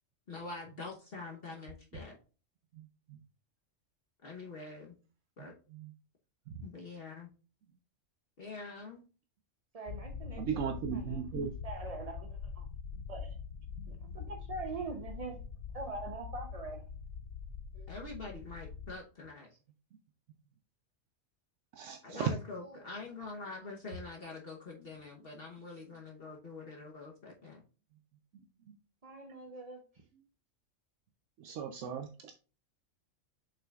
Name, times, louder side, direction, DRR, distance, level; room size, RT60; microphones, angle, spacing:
voice 1, 0.3-2.2 4.2-4.9 5.4-5.5 6.6-7.3 8.4-9.0 17.9-19.5 22.0-27.6, left 3 dB, 50° left, -1 dB, 1.2 m, -45 dB
voice 2, 9.7-11.2 11.6-12.7 13.1-13.3 13.9-15.4 15.7-16.8 17.7-17.9 22.6-22.8 29.0-30.0, right 3 dB, 35° right, 3 dB, 0.8 m, -43 dB
sound 1, 9.9-19.0, left 6 dB, 85° left, 1.0 m, -44 dB
voice 3, 10.4-11.5 21.7-22.3 31.4-32.3, right 7 dB, 75° right, 5 dB, 1.0 m, -36 dB
7.1 x 5.7 x 2.4 m, 0.36 s
omnidirectional pair, 1.3 m